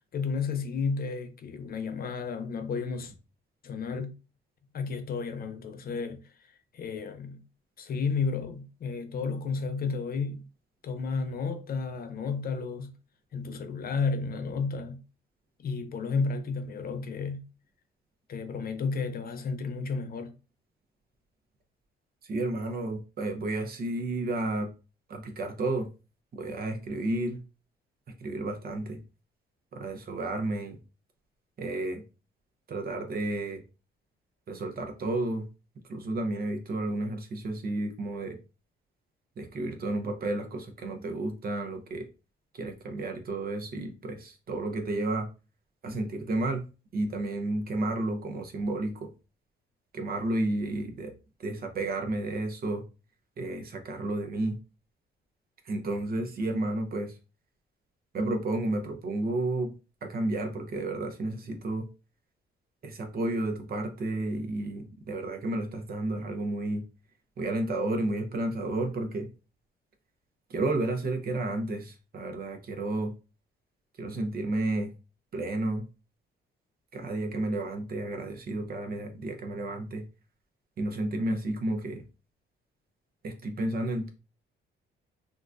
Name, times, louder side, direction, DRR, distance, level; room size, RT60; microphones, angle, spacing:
voice 1, 0.1-3.1 3.6-4.1 4.7-6.2 6.7-7.4 7.8-10.5 10.8-12.9 13.3-15.0 15.6-17.5 18.3-20.3, left 4 dB, 50° left, 0.6 m, -32 dB
voice 2, 22.2-24.7 25.1-25.9 26.3-27.4 28.2-29.0 29.7-30.8 31.6-32.0 32.7-33.6 34.5-35.5 35.9-38.4 39.4-42.1 42.5-45.3 45.8-46.6 46.9-49.1 49.9-51.1 51.4-52.8 53.4-54.6 55.6-57.2 58.1-59.7 60.0-61.9 62.8-66.8 67.4-69.3 70.5-73.1 74.0-74.9 75.3-75.9 76.9-80.0 80.8-82.0 83.2-84.1, right 2 dB, 50° right, 0.8 m, -31 dB
3.8 x 2.3 x 2.5 m
cardioid pair, 90°, 20 cm